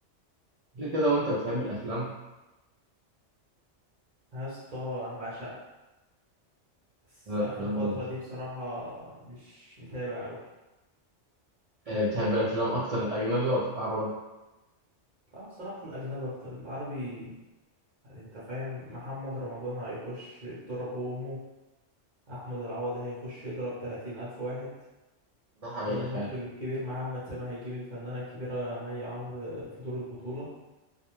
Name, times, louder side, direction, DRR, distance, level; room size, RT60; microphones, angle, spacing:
voice 1, 0.7-2.1 7.3-8.0 11.9-14.1 25.6-26.3, equal, 70° right, -7 dB, 0.3 m, -29 dB
voice 2, 4.3-5.6 7.2-10.4 15.3-17.3 18.0-21.4 22.3-24.7 25.8-30.5, equal, 45° right, -10 dB, 0.8 m, -37 dB
2.4 x 2.1 x 3.0 m, 1.1 s
omnidirectional pair, 1.2 m